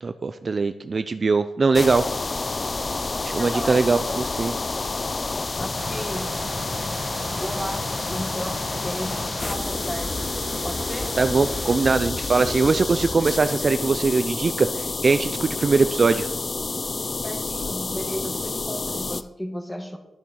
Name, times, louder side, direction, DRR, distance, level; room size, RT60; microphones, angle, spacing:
voice 1, 0.0-2.0 3.2-4.5 11.2-16.3, right 4 dB, 45° right, 10 dB, 0.5 m, -21 dB
sound 1, 1.7-19.2, left 3 dB, 35° left, 0.6 m, -29 dB
voice 2, 3.4-4.2 5.6-6.4 7.3-10.2 10.6-11.2 17.2-20.0, equal, 10° left, 4 dB, 2.2 m, -34 dB
sound 2, 5.8-11.8, right 4 dB, 70° right, 1.6 m, -38 dB
12.0 x 6.9 x 6.4 m, 0.92 s
cardioid pair, 85°, 0 cm